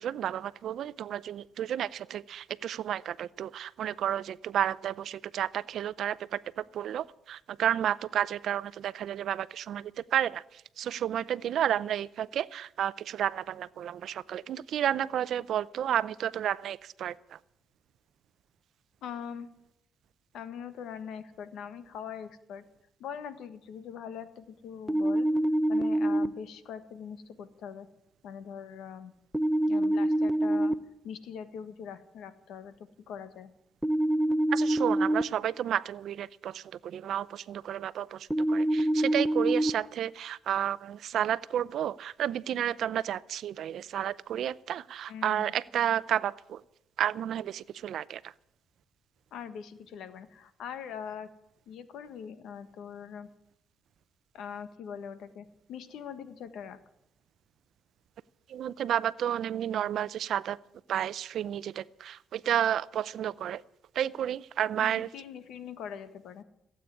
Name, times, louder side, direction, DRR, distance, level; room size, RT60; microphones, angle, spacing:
voice 1, 0.0-10.4 10.8-17.1 34.5-46.6 47.0-48.2 58.5-60.6 60.9-63.6 64.0-65.1, right 10 dB, 70° right, 18 dB, 0.5 m, -31 dB
voice 2, 19.0-19.5 20.3-22.6 23.0-25.3 25.7-27.9 28.2-29.1 29.7-30.7 31.0-33.5 45.1-45.5 49.3-51.3 51.7-53.3 54.3-56.8 64.8-66.4, left 7 dB, 80° left, 11 dB, 1.4 m, -42 dB
sound 1, 24.9-26.3 29.3-30.7 33.8-35.2 38.3-39.7, right 1 dB, 5° right, 0.8 m, -25 dB
16.0 x 8.6 x 9.8 m, 0.80 s
cardioid pair, 90°, 0 cm